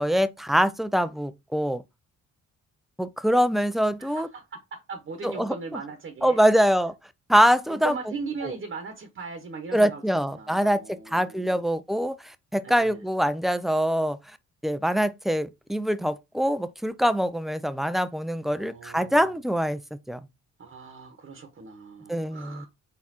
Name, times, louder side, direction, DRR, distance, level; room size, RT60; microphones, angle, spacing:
voice 1, 0.0-1.8 3.0-4.3 5.2-5.8 6.2-6.9 7.3-7.9 8.4-8.5 9.7-14.2 14.6-19.8 20.1-20.2 22.1-22.7, equal, ahead, 0.4 m, -24 dB
voice 2, 4.0-6.4 7.7-10.0 10.3-11.6 12.6-13.0 18.4-19.4 20.6-22.7, right 4 dB, 40° right, 1.0 m, -39 dB
4.3 x 3.6 x 2.8 m
cardioid pair, 90°, 30 cm